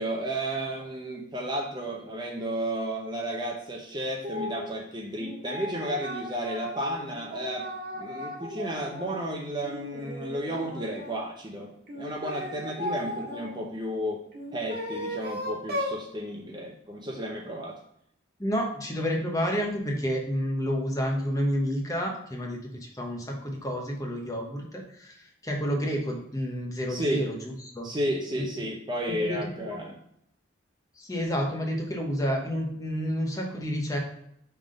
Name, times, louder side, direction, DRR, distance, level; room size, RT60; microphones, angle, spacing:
voice 1, 0.0-7.7 7.9-14.2 14.5-17.8 26.9-27.3 27.8-30.0, right 1 dB, 20° right, 1 dB, 0.6 m, -33 dB
sound 1, 4.2-4.7 5.2-9.2 9.6-11.2 11.9-13.5 14.3-16.0, equal, 50° right, 1.6 m, -36 dB
voice 2, 18.4-27.9 29.1-29.8 31.0-34.0, equal, 20° left, 1 dB, 0.9 m, -30 dB
5.7 x 3.5 x 5.0 m, 0.74 s
head